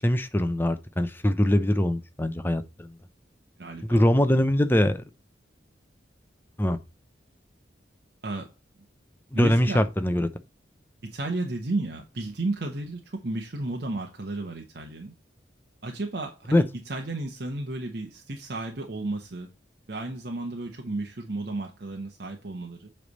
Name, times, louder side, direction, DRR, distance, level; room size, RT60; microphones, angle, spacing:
voice 1, 0.0-2.9 3.8-5.0 6.6-6.8 9.3-10.3 16.5-16.6, left 1 dB, 10° left, 0.6 m, -22 dB
voice 2, 3.6-4.1 8.2-8.5 9.3-9.8 11.0-15.1 15.8-19.5 19.9-22.9, right 2 dB, 60° right, 0.9 m, -33 dB
8.2 x 3.3 x 5.1 m
head